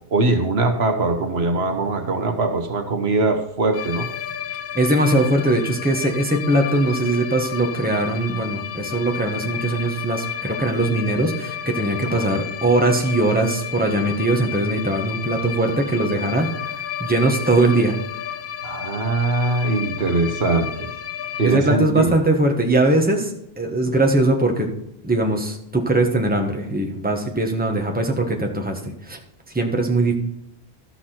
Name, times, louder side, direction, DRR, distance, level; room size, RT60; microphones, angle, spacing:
voice 1, 0.1-4.1 12.1-12.3 18.6-20.9 21.4-22.1, right 3 dB, 70° right, 5 dB, 1.3 m, -21 dB
sound 1, 3.7-21.6, left 9 dB, 55° left, 0.7 m, -32 dB
voice 2, 4.7-16.5 17.0-18.0 21.4-24.7 25.0-29.2 29.5-30.1, right 2 dB, 10° right, 2 dB, 1.3 m, -20 dB
14.0 x 6.0 x 4.4 m, 0.78 s
omnidirectional pair, 1.1 m